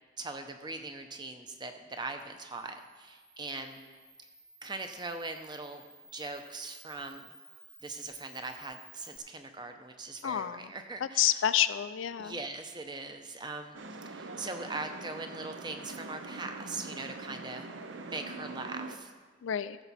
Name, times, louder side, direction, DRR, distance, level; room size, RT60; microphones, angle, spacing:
voice 1, 0.2-3.8 4.6-5.8 6.1-7.3 7.8-11.5 12.2-17.7 18.0-19.1, right 3 dB, 25° right, 6 dB, 0.7 m, -41 dB
Camera, 2.2-9.2, right 2 dB, 5° right, 0.3 m, -56 dB
voice 2, 10.2-10.7 11.2-12.3 19.4-19.8, left 11 dB, 80° left, 14 dB, 0.4 m, -28 dB
sound 1, 13.7-19.0, right 3 dB, 75° right, 0.7 m, -43 dB
14.5 x 6.9 x 4.2 m, 1.4 s
head